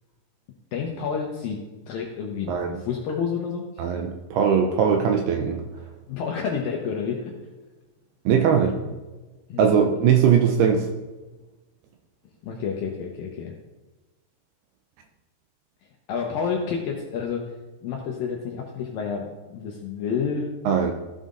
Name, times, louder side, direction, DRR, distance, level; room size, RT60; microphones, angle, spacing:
voice 1, 0.7-3.8 6.1-7.5 8.6-8.8 9.5-10.0 12.4-13.5 16.1-17.5 17.8-20.5, left 6 dB, 75° left, 0 dB, 2.1 m, -30 dB
voice 2, 3.8-5.6 8.3-8.7 9.6-10.9 20.7-20.9, right 7 dB, 80° right, 4 dB, 2.3 m, -20 dB
14.5 x 5.5 x 3.8 m, 1.2 s
omnidirectional pair, 5.1 m